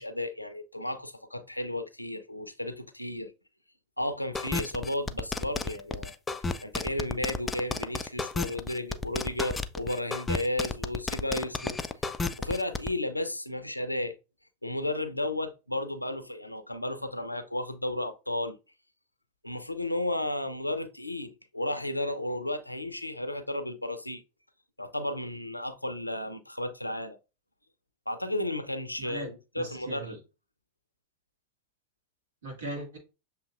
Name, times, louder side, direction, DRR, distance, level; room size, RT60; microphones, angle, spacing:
voice 1, 0.0-3.3 4.0-6.1 6.6-11.8 12.4-14.2 14.6-18.6 19.4-24.2 24.8-27.2 28.1-30.1, left 1 dB, 85° left, 0.5 m, -33 dB
sound 1, 4.3-12.9, left 3 dB, 15° left, 0.3 m, -32 dB
voice 2, 29.0-30.2 32.4-33.0, right 2 dB, 65° right, 1.9 m, -39 dB
6.8 x 2.8 x 2.4 m
figure-of-eight pair, 90°, 0 cm